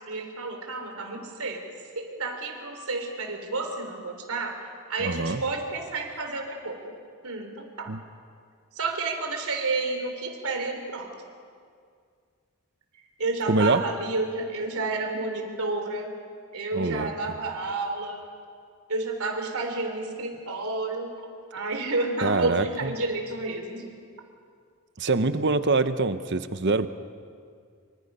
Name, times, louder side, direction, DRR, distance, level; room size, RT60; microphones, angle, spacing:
voice 1, 0.1-1.6 2.0-4.5 4.9-7.0 7.2-7.9 8.8-11.1 13.2-16.2 16.5-18.2 18.9-21.1 21.5-23.8, right 3 dB, 85° right, 4 dB, 3.6 m, -30 dB
voice 2, 5.0-5.4 7.9-8.0 13.5-13.8 16.7-17.1 22.2-22.9 25.0-26.9, right 3 dB, 50° right, 11 dB, 0.9 m, -24 dB
26.0 x 25.5 x 5.5 m, 2.2 s
head